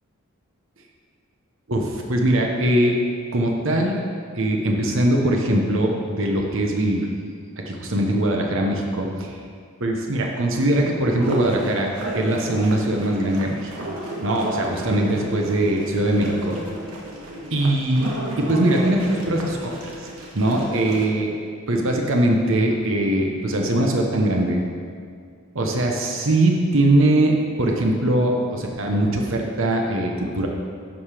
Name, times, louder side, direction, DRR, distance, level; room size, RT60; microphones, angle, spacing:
voice 1, 1.7-3.0 3.3-4.0 4.3-7.1 7.6-9.4 9.8-13.7 14.2-16.5 17.5-19.9 20.3-21.3 21.7-24.6 25.5-30.5, right 1 dB, 60° right, 1 dB, 0.9 m, -21 dB
Tapirapé hèlonamotchépi, 11.2-21.1, right 1 dB, 80° right, 1.4 m, -32 dB
11.5 x 5.0 x 5.0 m, 2.2 s
head